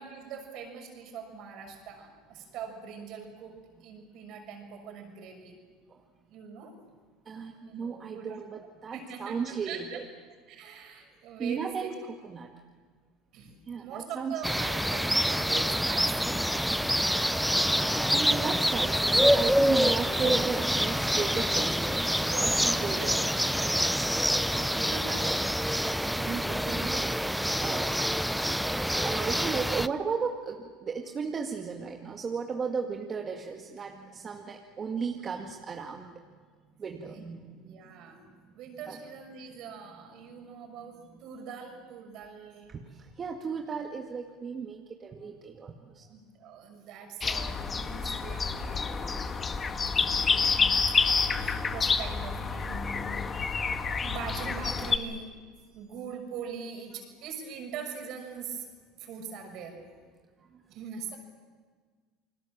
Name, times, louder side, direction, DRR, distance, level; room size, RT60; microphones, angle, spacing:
voice 1, 0.0-5.6 6.3-6.7 7.7-8.4 8.9-10.0 10.5-11.9 13.3-16.4 22.3-25.6 37.1-38.2 38.5-42.8 46.1-50.8 51.4-53.5 53.9-55.3 55.7-58.7 59.0-59.8 60.7-61.2, right 6 dB, 60° right, 4 dB, 6.3 m, -42 dB
voice 2, 7.3-10.0 11.4-12.0 12.2-12.5 13.7-14.4 18.0-23.2 25.8-27.9 29.0-36.2 36.8-37.8 38.9-39.0 42.7-46.0 60.5-60.6, right 5 dB, 35° right, 2 dB, 2.0 m, -35 dB
sound 1, 14.4-29.9, equal, ahead, 0.7 m, -26 dB
sound 2, 47.2-55.0, left 5 dB, 30° left, 1.6 m, -28 dB
29.5 x 20.5 x 7.4 m, 1.5 s
hypercardioid pair, 85°, 0 cm